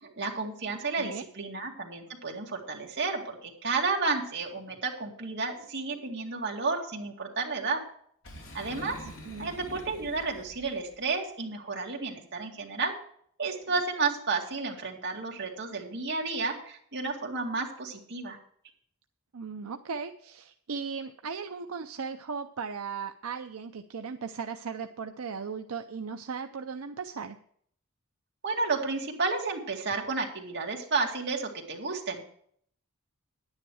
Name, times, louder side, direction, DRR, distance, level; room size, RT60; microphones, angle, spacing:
voice 1, 0.0-7.8 8.5-9.0 9.4-12.9 13.4-18.4 28.4-32.2, right 4 dB, 55° right, 0 dB, 2.3 m, -32 dB
Boom, 8.2-11.0, left 1 dB, 60° left, 2.7 m, -45 dB
voice 2, 9.0-9.5 19.3-27.4, right 5 dB, 75° right, 7 dB, 0.6 m, -37 dB
10.5 x 9.7 x 4.8 m, 0.62 s
head